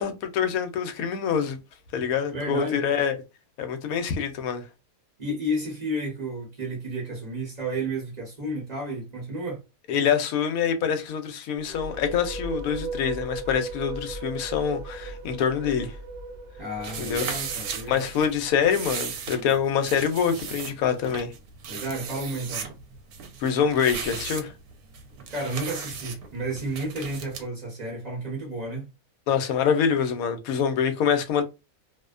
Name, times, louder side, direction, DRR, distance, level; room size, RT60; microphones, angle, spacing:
voice 1, 0.0-1.6 1.9-3.2 3.6-4.6 9.9-16.0 17.0-17.3 17.9-21.3 23.4-24.5 29.3-31.4, left 7 dB, 75° left, 1.0 m, -25 dB
voice 2, 2.3-2.8 5.2-9.6 16.6-18.0 21.7-22.6 25.3-28.9, right 1 dB, 35° right, 0.8 m, -32 dB
sound 1, 11.6-19.2, right 3 dB, 65° right, 0.6 m, -37 dB
sound 2, 16.8-27.4, right 6 dB, 85° right, 1.1 m, -37 dB
2.6 x 2.1 x 2.3 m
omnidirectional pair, 1.5 m